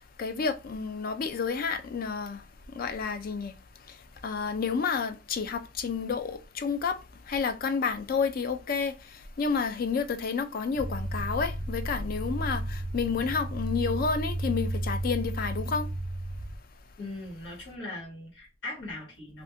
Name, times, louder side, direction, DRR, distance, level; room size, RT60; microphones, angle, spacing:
voice 1, 0.0-15.9, left 5 dB, 50° left, 0.4 m, -30 dB
sound 1, 10.8-16.6, right 1 dB, 35° right, 0.5 m, -33 dB
voice 2, 17.0-19.4, left 2 dB, 75° left, 1.6 m, -40 dB
2.6 x 2.5 x 3.4 m
head